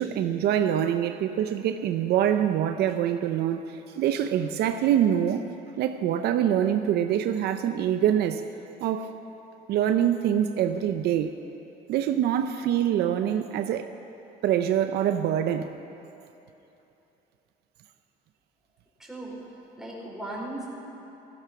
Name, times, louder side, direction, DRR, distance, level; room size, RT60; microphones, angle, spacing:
voice 1, 0.0-5.5 5.8-8.4 8.8-9.1 9.7-11.3 11.9-13.9 14.4-15.8, right 10 dB, 75° right, 8 dB, 0.7 m, -25 dB
voice 2, 19.0-19.4 19.8-20.6, right 1 dB, 5° right, -4 dB, 4.6 m, -37 dB
15.5 x 15.0 x 6.0 m, 2.9 s
cardioid pair, 110°, 17 cm